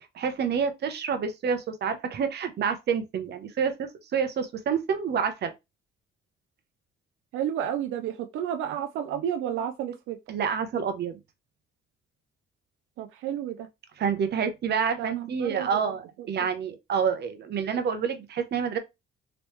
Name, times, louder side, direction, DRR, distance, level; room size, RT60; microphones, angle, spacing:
voice 1, 0.1-5.5 10.3-11.2 14.0-18.8, right 6 dB, 60° right, 0.8 m, -28 dB
voice 2, 7.3-10.2 13.0-13.7 15.0-15.9 16.4-16.5, right 10 dB, 85° right, 0.4 m, -31 dB
3.1 x 3.0 x 3.0 m
cardioid pair, 90°, 20 cm